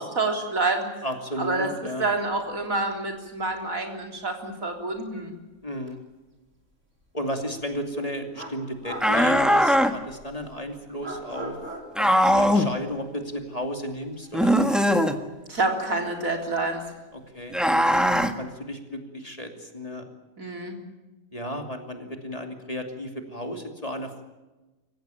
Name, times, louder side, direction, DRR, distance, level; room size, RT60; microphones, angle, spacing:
voice 1, 0.0-0.9 1.4-1.7 2.0-5.3 12.1-12.2 15.5-16.8 20.4-20.8, right 3 dB, 85° right, 3 dB, 4.1 m, -27 dB
voice 2, 1.0-2.0 5.6-6.0 7.1-11.6 11.9-14.8 17.1-20.1 21.3-24.2, equal, 25° left, 4 dB, 2.8 m, -34 dB
sound 1, 3.2-3.3 3.5-3.7 5.9-6.0 7.7-7.8 8.3-10.1 11.0-13.0 13.3-13.4 14.1-16.5, right 1 dB, 65° right, 5.2 m, -40 dB
sound 2, 9.0-9.9 12.0-12.7 14.3-15.2 17.5-18.3, equal, ahead, 1.4 m, -20 dB
26.0 x 15.5 x 9.2 m, 1.1 s
omnidirectional pair, 1.4 m